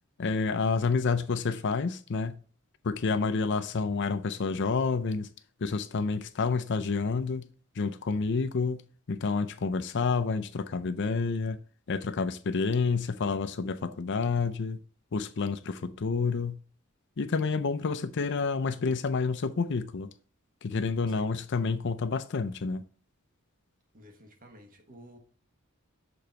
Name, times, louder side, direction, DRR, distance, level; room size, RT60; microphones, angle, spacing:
voice 1, 0.2-2.4 2.8-5.3 5.6-7.5 7.8-11.6 11.9-14.8 15.1-16.6 17.2-20.1 20.6-22.8, left 4 dB, 55° left, 0.5 m, -29 dB
voice 2, 21.1-21.4 23.9-25.2, equal, 40° right, 1.3 m, -52 dB
6.8 x 4.0 x 4.4 m
head